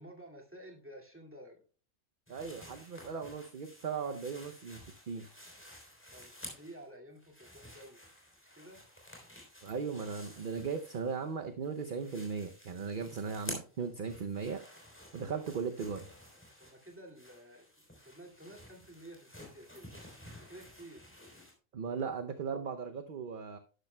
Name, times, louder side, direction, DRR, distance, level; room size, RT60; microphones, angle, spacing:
voice 1, 0.0-1.6 6.1-8.0 8.4-8.8 15.3-15.4 16.6-19.9 20.4-21.1, right 1 dB, 10° right, 0 dB, 2.2 m, -52 dB
sound 1, 2.3-6.8 7.1-11.3 11.6-21.5, equal, 10° left, 3.4 m, -52 dB
voice 2, 2.3-5.3 9.6-14.6 15.1-16.0 21.7-23.6, right 5 dB, 50° right, 7 dB, 0.8 m, -37 dB
11.5 x 10.5 x 2.2 m, 0.39 s
omnidirectional pair, 1.3 m